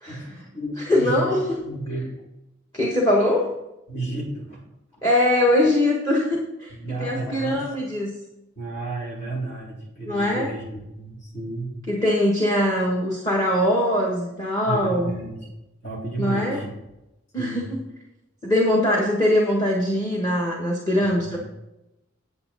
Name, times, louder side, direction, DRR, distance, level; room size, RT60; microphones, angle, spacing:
voice 1, 0.1-1.3 1.6-2.1 3.9-4.6 6.7-7.7 8.6-11.7 14.6-15.5 15.8-16.7 17.4-17.6 21.0-21.4, right 2 dB, 60° left, -4 dB, 3.8 m, -32 dB
voice 2, 0.8-1.6 2.7-3.5 5.0-6.7 7.0-8.1 10.1-10.5 11.9-15.1 16.2-16.6 17.3-17.8 18.4-21.4, left 1 dB, 15° left, -2 dB, 1.3 m, -22 dB
8.9 x 8.2 x 4.1 m, 0.91 s
head